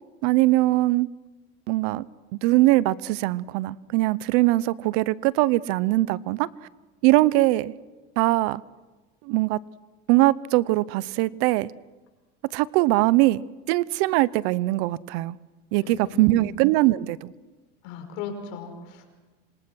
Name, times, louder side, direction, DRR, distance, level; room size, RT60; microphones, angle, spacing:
voice 1, 0.2-1.1 1.7-2.1 2.4-6.5 7.0-7.7 8.2-8.6 9.2-9.6 10.1-11.7 12.5-15.4 15.7-17.3, right 18 dB, 75° right, 20 dB, 0.8 m, -21 dB
voice 2, 15.8-16.5 17.8-19.2, left 6 dB, 75° left, 4 dB, 5.7 m, -37 dB
27.0 x 25.0 x 6.3 m, 1.2 s
supercardioid pair, 130°, 33 cm